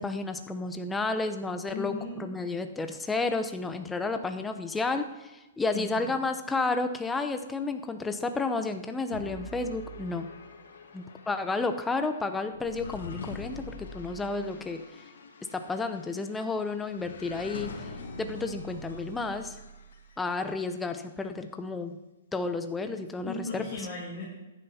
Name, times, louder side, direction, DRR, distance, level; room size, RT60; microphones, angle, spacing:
voice 1, 0.0-10.3 10.9-14.8 15.5-17.9 18.2-19.6 20.2-22.0 22.3-23.7, left 3 dB, 5° left, 7 dB, 0.8 m, -31 dB
voice 2, 1.6-2.2 5.7-6.1 23.2-24.2, left 3 dB, 25° left, -10 dB, 4.9 m, -37 dB
sound 1, 9.1-20.4, left 2 dB, 80° left, 2.4 m, -44 dB
14.5 x 10.5 x 4.3 m, 1.1 s
hypercardioid pair, 160°, 0 cm